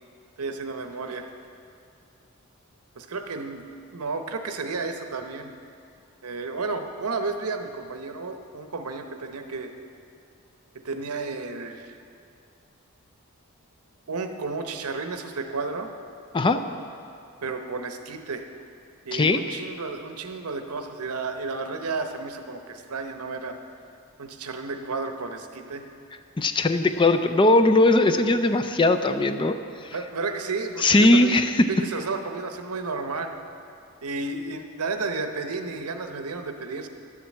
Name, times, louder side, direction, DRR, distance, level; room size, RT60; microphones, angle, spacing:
voice 1, 0.4-1.3 3.0-3.6 3.9-5.5 6.2-9.7 10.8-11.9 14.1-15.9 17.4-18.4 19.1-23.6 24.2-25.8 29.9-31.3 31.7-33.3 34.0-36.9, right 3 dB, 85° right, 6 dB, 0.9 m, -32 dB
voice 2, 26.4-29.6 29.8-29.9 30.8-31.6, left 2 dB, 20° left, 8 dB, 0.4 m, -19 dB
11.0 x 7.5 x 7.3 m, 2.5 s
head